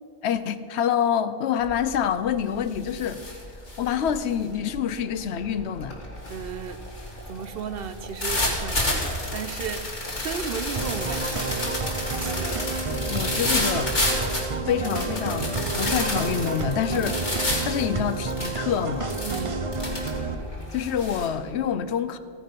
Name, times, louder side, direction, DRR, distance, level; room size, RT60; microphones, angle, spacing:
voice 1, 0.2-3.2 3.8-6.0 12.4-13.9 14.7-19.1 20.7-22.2, left 8 dB, 75° left, 13 dB, 0.9 m, -27 dB
sound 1, 1.6-2.0 2.3-21.3, left 1 dB, 40° left, 2.4 m, -30 dB
voice 2, 6.3-6.8 7.3-9.9 10.2-11.6 12.2-12.3 17.3-17.5 19.2-19.5, right 7 dB, 65° right, 11 dB, 0.8 m, -35 dB
sound 2, 10.8-20.3, right 4 dB, 35° right, 0.6 m, -30 dB
14.5 x 9.6 x 5.2 m, 2.4 s
omnidirectional pair, 1.1 m